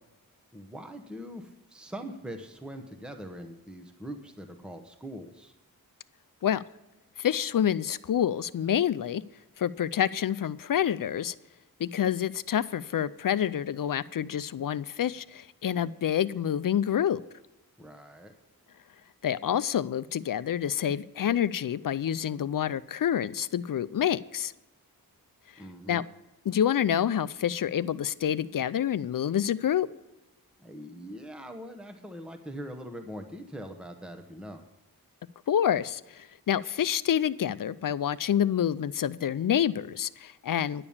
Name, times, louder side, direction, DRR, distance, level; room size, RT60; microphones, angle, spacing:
voice 1, 0.5-5.5 17.8-18.3 25.6-26.0 30.6-34.6, equal, ahead, 6 dB, 1.0 m, -42 dB
voice 2, 7.2-9.2 9.6-11.3 11.8-17.2 19.2-24.5 25.9-26.0 26.5-29.9 35.5-40.9, left 9 dB, 60° left, 15 dB, 0.5 m, -27 dB
11.0 x 6.9 x 7.1 m, 1.0 s
wide cardioid pair, 85°, 36 cm